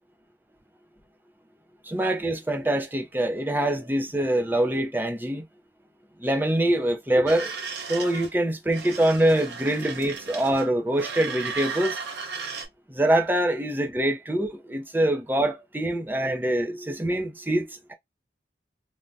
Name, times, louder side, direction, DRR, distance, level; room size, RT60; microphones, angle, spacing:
voice 1, 1.9-5.4 6.2-7.5 7.9-12.0 13.0-17.9, right 1 dB, 10° right, 0.5 m, -24 dB
sound 1, 7.3-8.3 8.7-10.7 10.9-12.7, right 5 dB, 75° right, 0.7 m, -35 dB
3.3 x 2.1 x 2.5 m
head